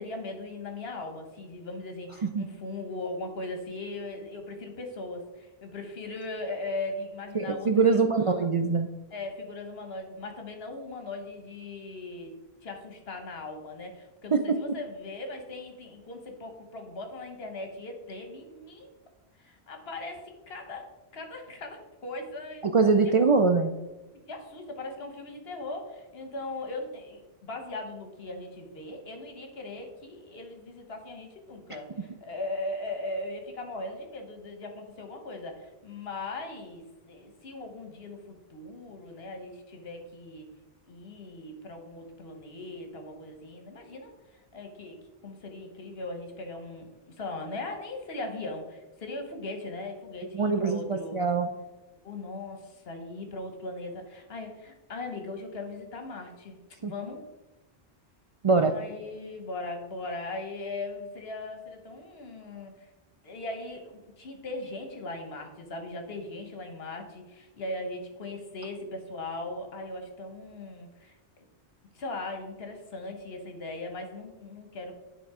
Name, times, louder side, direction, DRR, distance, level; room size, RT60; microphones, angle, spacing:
voice 1, 0.0-8.5 9.1-18.9 19.4-22.7 24.3-40.5 40.9-51.2 52.0-57.2 58.6-62.9 63.2-71.2 71.9-74.9, left 2 dB, 70° left, 5 dB, 1.3 m, -39 dB
voice 2, 7.4-8.9 14.3-14.6 22.6-23.7 50.3-51.5 56.8-56.9 58.4-58.7, right 4 dB, 55° right, 5 dB, 0.3 m, -23 dB
9.4 x 3.6 x 4.8 m, 1.1 s
omnidirectional pair, 1.1 m